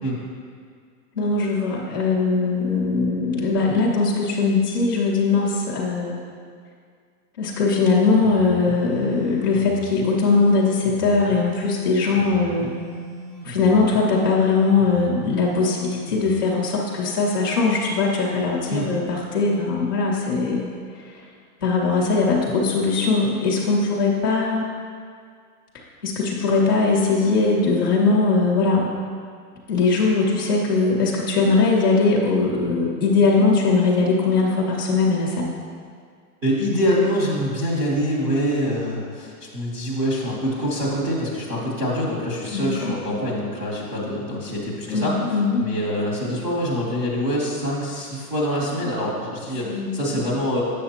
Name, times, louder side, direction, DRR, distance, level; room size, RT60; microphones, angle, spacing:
voice 1, 1.1-6.2 7.4-12.7 13.4-20.7 21.0-21.2 21.6-24.7 26.0-28.9 29.7-35.5 42.5-42.9 44.9-45.6 48.7-48.8 49.6-50.4, left 4 dB, 15° left, -8 dB, 0.4 m, -20 dB
sound 1, 7.8-16.4, right 1 dB, 60° right, 1.2 m, -38 dB
voice 2, 36.4-45.1 45.6-50.6, equal, 20° right, -8 dB, 0.8 m, -25 dB
8.4 x 6.5 x 2.8 m, 2.1 s
supercardioid pair, 170°, 47 cm